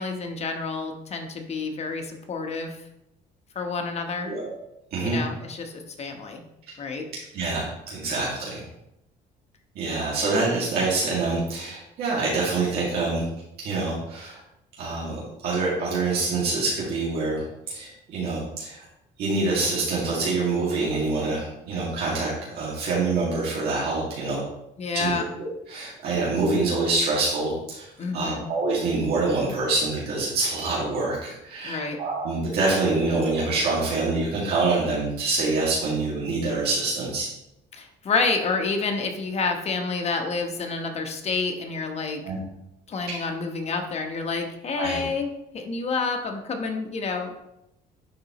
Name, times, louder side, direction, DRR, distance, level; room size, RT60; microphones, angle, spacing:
voice 1, 0.0-2.8 3.5-4.3 5.0-6.4 6.8-7.1 24.8-25.3 28.0-28.4 31.6-32.0 37.7-42.2 42.9-45.3 45.5-47.3, left 4 dB, 40° left, 4 dB, 1.0 m, -29 dB
voice 2, 4.9-5.2 7.3-8.7 9.8-13.3 13.6-14.4 14.8-18.8 19.2-24.4 24.9-37.3 42.2-42.4 44.7-45.0, right 3 dB, 70° right, -6 dB, 2.1 m, -26 dB
10.5 x 3.9 x 3.0 m, 0.86 s
cardioid pair, 110°, 17 cm